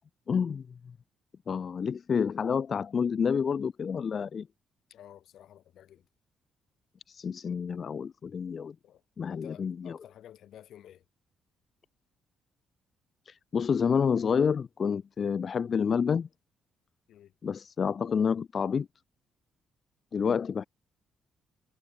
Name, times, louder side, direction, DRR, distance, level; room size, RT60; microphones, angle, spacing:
voice 1, 0.3-0.6 1.5-4.5 7.1-8.8 9.2-10.0 13.3-16.3 17.4-18.9 20.1-20.6, left 6 dB, 45° left, 0.4 m, -29 dB
voice 2, 4.9-6.1 8.8-9.0 9.3-11.0 17.1-17.3, left 11 dB, 75° left, 4.1 m, -52 dB
cardioid pair, 90°, 0 cm